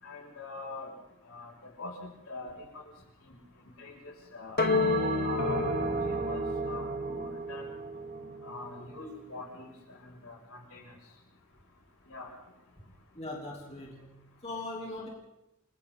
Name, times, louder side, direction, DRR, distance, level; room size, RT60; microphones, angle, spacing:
voice 1, 0.0-0.9 1.3-1.5 1.8-2.8 3.3-3.4 3.8-4.6 5.2-7.6 8.4-10.9 12.1-12.3, left 3 dB, 70° left, -1 dB, 6.5 m, -44 dB
sound 1, 4.6-7.2, left 4 dB, 45° left, 0.9 m, -31 dB
Bell, 4.6-9.2, right 2 dB, 45° right, 3.0 m, -33 dB
voice 2, 13.1-15.1, left 2 dB, 30° left, -2 dB, 3.3 m, -40 dB
29.5 x 22.5 x 3.9 m, 0.93 s
head